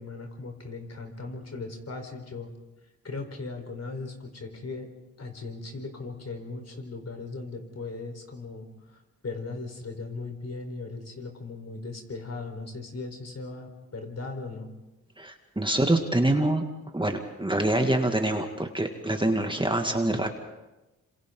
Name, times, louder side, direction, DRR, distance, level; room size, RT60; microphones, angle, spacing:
voice 1, 0.0-2.5 3.0-4.9 5.2-14.7, left 3 dB, 50° left, 4 dB, 4.6 m, -38 dB
voice 2, 15.2-16.6 16.9-20.3, right 1 dB, 15° right, 4 dB, 2.4 m, -25 dB
27.0 x 26.5 x 4.0 m, 1.0 s
supercardioid pair, 50°, 33 cm